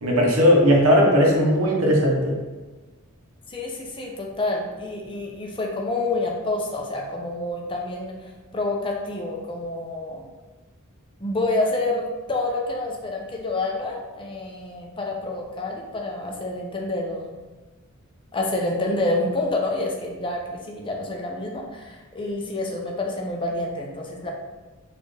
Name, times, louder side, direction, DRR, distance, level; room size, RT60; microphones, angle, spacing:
voice 1, 0.0-2.3, equal, 65° right, -2 dB, 0.9 m, -17 dB
voice 2, 3.5-10.2 11.2-17.3 18.3-24.3, left 2 dB, 25° left, 0 dB, 0.5 m, -28 dB
4.3 x 2.4 x 3.2 m, 1.2 s
head